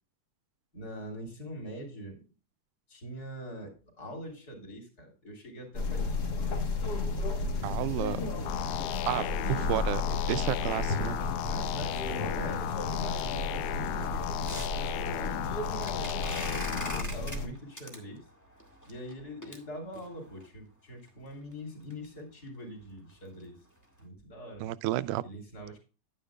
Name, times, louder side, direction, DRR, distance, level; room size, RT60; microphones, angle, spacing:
voice 1, 0.7-2.3 2.9-6.6 7.4-8.1 9.2-10.6 10.9-14.0 14.3-16.4 16.6-18.3 18.9-23.6 24.0-24.7 25.2-25.8, equal, 30° left, 3.5 m, -44 dB
sound 1, 5.7-17.5, left 3 dB, 45° left, 1.3 m, -33 dB
voice 2, 7.6-8.2 9.1-10.0 10.3-11.2 24.6-25.2, right 15 dB, 85° right, 2.1 m, -31 dB
sound 2, 8.5-17.0, left 14 dB, 80° left, 2.0 m, -35 dB
sound 3, 13.2-20.5 21.1-21.2 21.5-21.6 21.9-22.0 22.3-22.5 22.9-23.1 23.4-23.5 24.0-24.1, equal, 10° left, 0.9 m, -44 dB
10.5 x 10.0 x 2.3 m
omnidirectional pair, 3.5 m